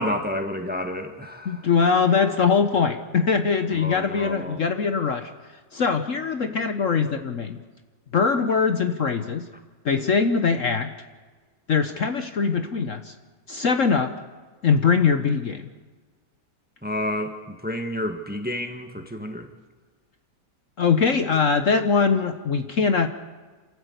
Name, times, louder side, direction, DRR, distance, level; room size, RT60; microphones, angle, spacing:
voice 1, 0.0-1.6 3.7-4.6 16.8-19.5, left 1 dB, 5° right, 5 dB, 1.4 m, -30 dB
voice 2, 1.4-5.3 5.7-7.6 8.1-9.4 9.8-10.9 11.7-13.1 13.5-14.1 14.6-15.7 20.8-23.1, left 5 dB, 55° left, 8 dB, 1.2 m, -22 dB
28.0 x 13.0 x 8.2 m, 1.4 s
omnidirectional pair, 1.8 m